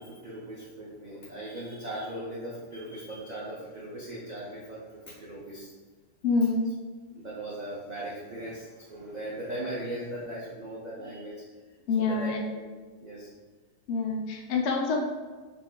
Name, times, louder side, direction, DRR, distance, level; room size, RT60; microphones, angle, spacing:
voice 1, 0.0-5.7 7.1-11.4 12.0-12.7 13.0-13.3, right 1 dB, 85° right, -8 dB, 0.4 m, -38 dB
voice 2, 6.2-6.7 11.9-12.4 13.9-15.1, left 4 dB, 70° left, 0 dB, 0.6 m, -26 dB
4.0 x 2.6 x 2.3 m, 1.4 s
omnidirectional pair, 1.7 m